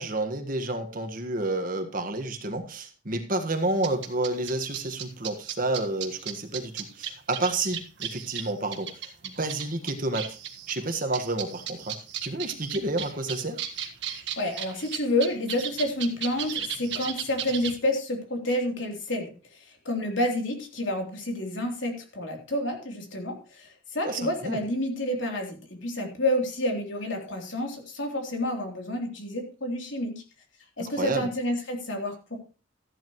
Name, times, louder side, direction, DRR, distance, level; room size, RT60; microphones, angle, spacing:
voice 1, 0.0-10.4 10.7-12.0 12.2-13.6 24.0-24.6 31.0-31.3, right 2 dB, 45° right, 6 dB, 1.6 m, -30 dB
sound 1, 3.8-17.8, right 9 dB, 65° right, 1.6 m, -35 dB
voice 2, 14.4-30.2 30.8-32.4, left 1 dB, 75° left, 2 dB, 3.4 m, -29 dB
14.5 x 11.0 x 3.1 m, 0.34 s
head